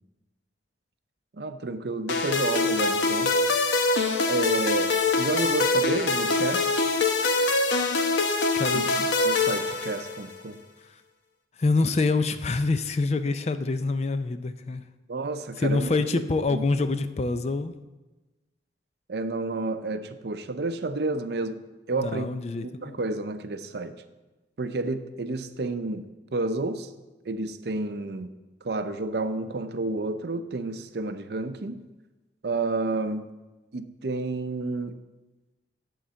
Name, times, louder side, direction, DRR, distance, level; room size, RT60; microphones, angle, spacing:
voice 1, 1.4-3.3 4.3-6.8 8.7-8.9 9.2-10.6 15.1-16.0 16.5-16.6 19.1-21.6 21.9-22.3 22.6-23.9 24.6-26.0 26.3-26.9 27.3-28.3 28.6-31.8 32.4-33.3 33.7-34.9, right 2 dB, 65° right, 10 dB, 0.6 m, -30 dB
sound 1, 2.1-10.4, left 3 dB, 85° left, 0.9 m, -24 dB
voice 2, 8.5-9.1 11.6-14.8 15.6-17.8 22.0-23.0, left 3 dB, 35° left, 11 dB, 0.4 m, -26 dB
11.0 x 3.8 x 7.4 m, 1.1 s
head